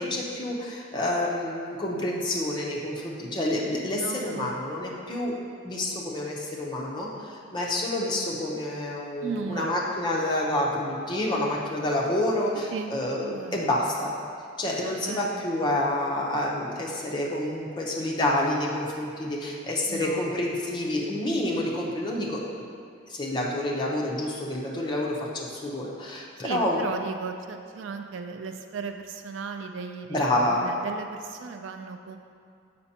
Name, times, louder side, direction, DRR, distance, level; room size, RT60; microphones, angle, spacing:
voice 1, 0.0-5.3 5.6-14.1 14.6-22.7 23.1-26.8 30.1-30.7, left 1 dB, 20° left, -4 dB, 0.7 m, -28 dB
voice 2, 4.0-4.6 9.2-9.8 12.7-13.7 14.9-15.4 19.9-20.7 26.4-30.2 30.5-32.2, right 5 dB, 70° right, 6 dB, 0.3 m, -36 dB
6.8 x 5.2 x 2.8 m, 2.4 s
head